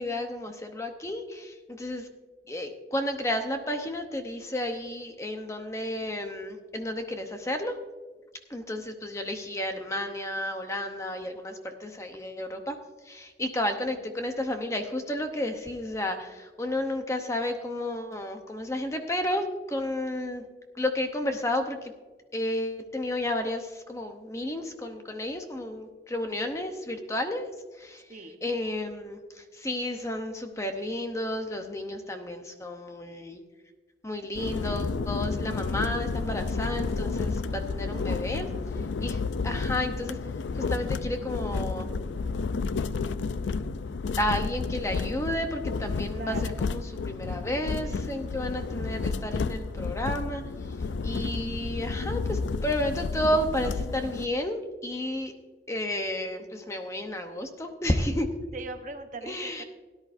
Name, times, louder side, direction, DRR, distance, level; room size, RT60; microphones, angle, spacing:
voice 1, 0.0-2.1 2.5-7.8 8.5-12.8 13.0-20.5 20.7-21.9 22.3-27.5 27.8-28.0 28.4-33.4 34.0-38.5 39.0-40.2 40.5-41.9 44.2-50.4 51.0-55.3 55.7-58.3 59.2-59.6, left 1 dB, 15° left, 5 dB, 0.8 m, -32 dB
voice 2, 28.1-28.4 37.4-38.5 46.1-46.6 48.6-48.7 58.5-59.6, right 2 dB, 45° right, 6 dB, 1.0 m, -42 dB
sound 1, 34.3-54.3, left 4 dB, 85° left, 0.4 m, -31 dB
17.5 x 10.5 x 2.6 m, 1.3 s
head